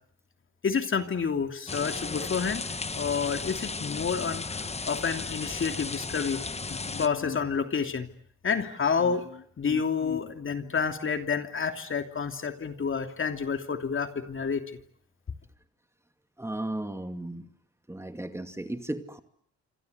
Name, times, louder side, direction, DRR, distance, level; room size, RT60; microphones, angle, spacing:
voice 1, 0.6-2.6 2.9-8.1 8.4-14.6, left 6 dB, 40° left, 7 dB, 3.0 m, -29 dB
sound 1, 1.7-7.1, left 4 dB, 20° left, 1.2 m, -35 dB
voice 2, 16.4-17.5 17.9-19.2, right 1 dB, 10° right, 8 dB, 2.5 m, -35 dB
27.0 x 26.5 x 8.1 m, 0.66 s
cardioid pair, 90°, 30 cm